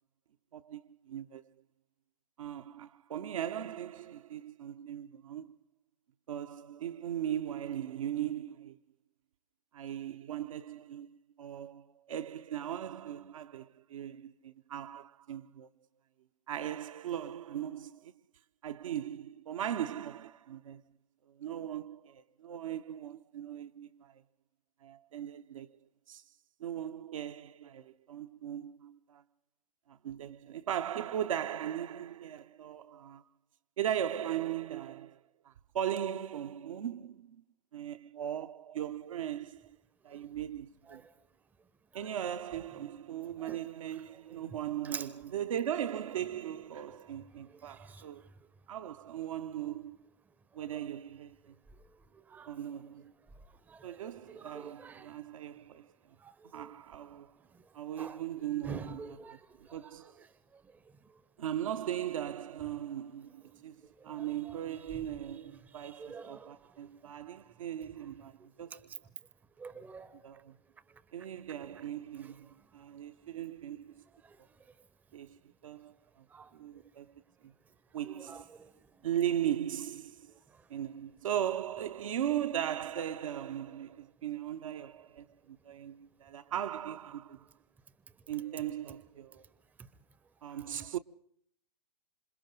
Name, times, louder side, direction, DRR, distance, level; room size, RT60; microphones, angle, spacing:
voice 1, 0.5-1.5 2.4-5.5 6.3-8.8 9.7-15.7 16.5-18.1 18.6-20.8 21.3-24.2 24.8-25.8 26.1-26.2 26.6-29.2 29.9-33.2 33.8-37.4 37.7-39.8 40.0-41.0 41.9-48.2 48.7-50.0 50.5-51.5 52.5-53.1 53.8-55.9 56.4-57.3 57.7-60.2 61.4-69.0 70.2-70.6 71.1-74.0 75.1-76.3 76.5-77.1 77.4-77.5 77.9-78.5 79.0-80.3 80.7-87.5 88.3-89.4 90.4-91.0, right 10 dB, 55° right, 0.8 m, -38 dB
voice 2, 54.3-55.1 56.2-56.7 58.0-58.2 58.7-59.4 64.1-64.2 66.0-66.5 69.6-70.2 76.3-76.5 78.3-78.7, right 5 dB, 10° right, 0.8 m, -45 dB
27.0 x 27.0 x 3.9 m
figure-of-eight pair, 120°, 21 cm